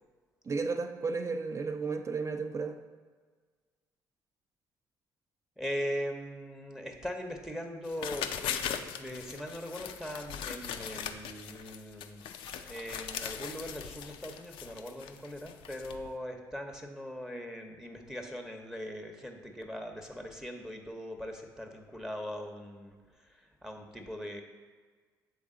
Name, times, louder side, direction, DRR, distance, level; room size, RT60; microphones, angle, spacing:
voice 1, 0.4-2.8, right 4 dB, 30° right, 7 dB, 0.6 m, -33 dB
voice 2, 5.6-12.2 12.6-24.4, equal, 5° right, 3 dB, 0.8 m, -40 dB
sound 1, 7.8-16.1, left 8 dB, 65° left, 0.4 m, -40 dB
7.2 x 3.7 x 3.7 m, 1.5 s
hypercardioid pair, 55°, 9 cm